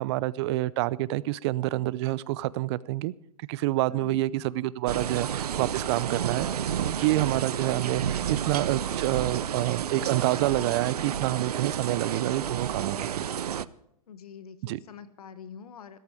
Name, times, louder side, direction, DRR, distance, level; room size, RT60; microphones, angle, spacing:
voice 1, 0.0-3.1 3.5-6.5 6.8-13.3 14.6-14.8, right 17 dB, 45° right, 0.6 m, -28 dB
voice 2, 3.9-4.2 14.1-16.0, left 7 dB, 75° left, 1.5 m, -45 dB
sound 1, 4.9-13.6, right 9 dB, 85° right, 0.6 m, -31 dB
15.5 x 13.5 x 4.9 m
hypercardioid pair, 125°, 19 cm